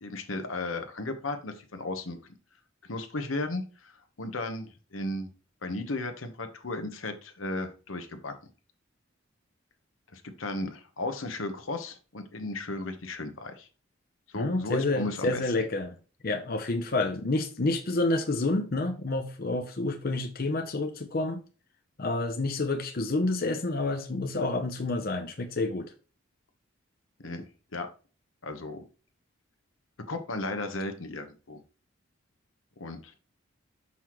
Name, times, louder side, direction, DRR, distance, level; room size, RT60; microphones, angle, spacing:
voice 1, 0.0-2.2 2.9-5.3 5.6-8.3 10.1-13.7 14.3-15.5 27.2-27.5 27.7-27.9 28.4-28.8 30.1-31.6 32.8-33.1, left 2 dB, 90° left, 1.1 m, -35 dB
voice 2, 14.3-16.0 16.2-21.4 22.0-25.9, left 2 dB, 50° left, 0.7 m, -29 dB
5.9 x 5.6 x 3.1 m
head